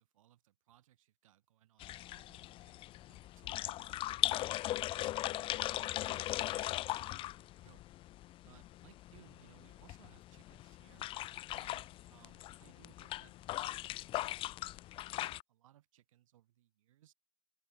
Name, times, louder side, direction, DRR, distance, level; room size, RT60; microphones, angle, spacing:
voice 1, 0.0-5.5 6.1-7.8 8.4-11.1 11.5-17.1, right 13 dB, 70° right, 3.5 m, -65 dB
sound 1, 1.8-15.4, left 15 dB, 30° left, 0.8 m, -39 dB
open air
hypercardioid pair, 125°, 18 cm